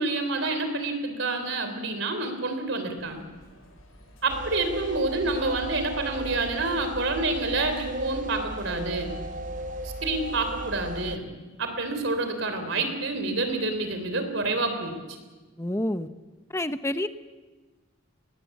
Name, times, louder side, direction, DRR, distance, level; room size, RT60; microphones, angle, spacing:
voice 1, 0.0-3.2 4.2-9.2 9.8-11.2 11.6-14.9, right 3 dB, 65° right, 7 dB, 3.6 m, -28 dB
sound 1, 3.0-10.7, equal, 80° left, 7.3 m, -49 dB
sound 2, 4.3-11.2, right 1 dB, 35° right, 0.7 m, -36 dB
voice 2, 15.6-16.1 16.5-17.1, left 1 dB, 15° left, 10 dB, 0.8 m, -28 dB
21.0 x 20.0 x 8.4 m, 1.3 s
head